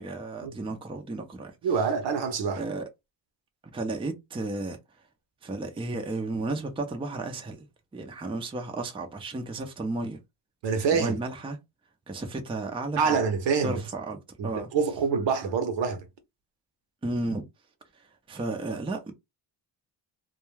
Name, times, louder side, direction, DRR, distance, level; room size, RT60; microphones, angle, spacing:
voice 1, 0.0-1.5 2.6-2.8 3.7-4.8 5.4-7.6 7.9-10.2 10.9-11.6 12.1-13.2 13.6-14.2 14.4-14.7 17.0-17.4 18.3-19.1, right 2 dB, 10° right, 0.5 m, -33 dB
voice 2, 1.6-2.6 10.6-11.2 13.0-13.8 14.4-16.0, right 5 dB, 65° right, 0.7 m, -26 dB
2.2 x 2.2 x 3.1 m
cardioid pair, 105°, 46 cm